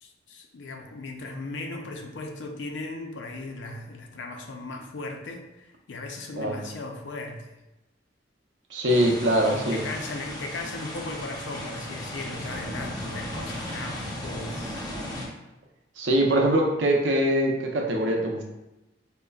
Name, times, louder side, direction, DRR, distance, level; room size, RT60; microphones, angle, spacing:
voice 1, 0.0-7.5 9.5-15.0, left 2 dB, 90° left, 3 dB, 0.5 m, -37 dB
voice 2, 6.3-6.7 8.7-9.8 16.0-18.4, right 1 dB, 85° right, 0 dB, 0.6 m, -23 dB
sound 1, 8.9-15.3, left 1 dB, 20° left, 0.7 m, -36 dB
5.1 x 2.1 x 2.3 m, 0.98 s
head